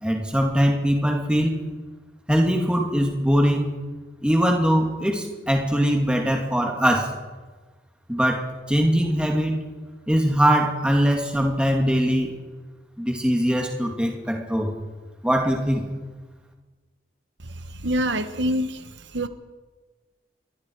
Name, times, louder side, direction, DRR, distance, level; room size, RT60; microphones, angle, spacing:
voice 1, 0.0-1.6 2.3-3.7 4.2-7.1 8.1-9.6 10.1-12.3 13.0-14.7 15.2-15.9, equal, 5° right, 1 dB, 2.5 m, -21 dB
voice 2, 17.8-18.8 19.1-19.3, equal, 85° right, 9 dB, 1.4 m, -24 dB
27.0 x 21.5 x 4.8 m, 1.3 s
head